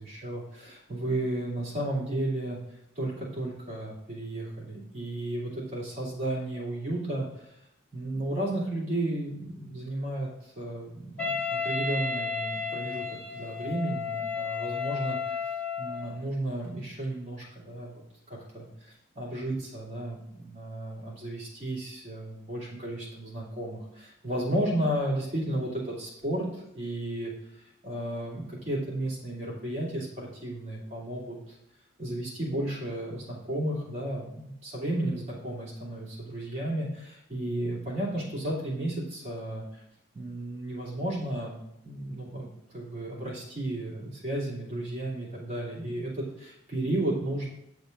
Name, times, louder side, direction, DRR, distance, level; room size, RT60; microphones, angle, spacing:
voice 1, 0.0-2.6 2.9-7.5 7.9-13.0 13.3-15.4 15.8-18.0 18.3-31.5 32.0-39.8 40.1-41.6 41.8-42.5 42.7-47.5, right 1 dB, 35° right, -7 dB, 2.7 m, -33 dB
Wind instrument woodwind instrument, 11.2-16.2, left 5 dB, 5° left, 2.6 m, -32 dB
8.3 x 7.1 x 2.6 m, 0.81 s
head